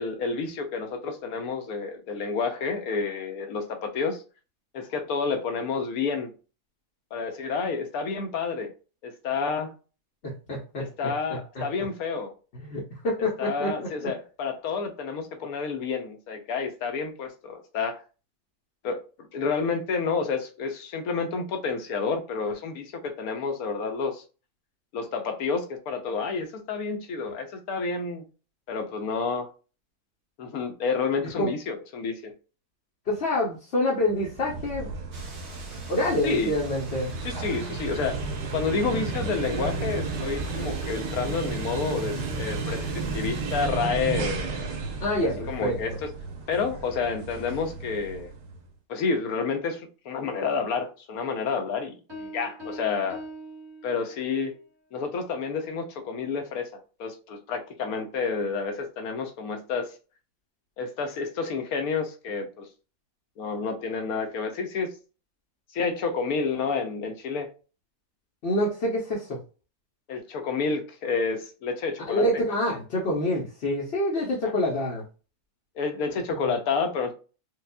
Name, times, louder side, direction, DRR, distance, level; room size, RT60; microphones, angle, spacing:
voice 1, 0.0-4.2 4.7-6.3 7.1-8.7 9.0-9.7 10.8-12.3 13.4-18.0 18.8-19.0 19.3-24.2 24.9-28.2 28.7-29.5 30.4-32.3 36.2-36.5 37.2-38.2 38.5-44.8 45.5-46.1 46.5-48.3 48.9-51.9 52.2-53.2 53.8-54.5 54.9-59.9 60.8-62.7 63.4-64.9 65.7-67.5 70.1-72.4 74.4-74.5 75.8-77.1, left 5 dB, 70° left, 1.1 m, -29 dB
voice 2, 10.2-10.8 11.5-11.6 12.5-14.1 31.4-31.5 33.1-34.9 35.9-37.1 45.0-46.0 68.4-69.4 72.1-75.0, left 1 dB, 50° left, 0.9 m, -27 dB
sound 1, 34.1-48.6, right 3 dB, 85° right, 1.3 m, -33 dB
sound 2, 35.1-43.7, right 1 dB, 70° right, 1.7 m, -45 dB
Piano, 52.1-54.5, equal, 20° right, 1.1 m, -42 dB
4.8 x 2.4 x 2.2 m
omnidirectional pair, 1.7 m